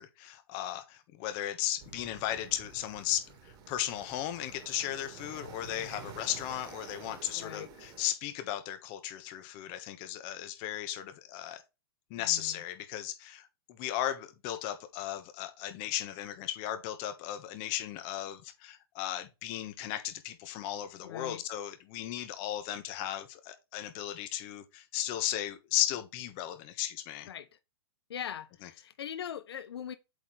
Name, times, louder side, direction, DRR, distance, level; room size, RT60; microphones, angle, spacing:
voice 1, 0.0-11.6 12.1-27.3 28.6-28.7, left 12 dB, 40° left, 1.3 m, -36 dB
sound 1, 1.8-8.1, right 5 dB, 30° right, 1.7 m, -50 dB
voice 2, 7.3-7.7 12.2-12.6 21.0-21.4 27.3-27.5 28.1-29.9, left 9 dB, 85° left, 0.6 m, -41 dB
8.0 x 4.3 x 3.2 m
hypercardioid pair, 140°, 13 cm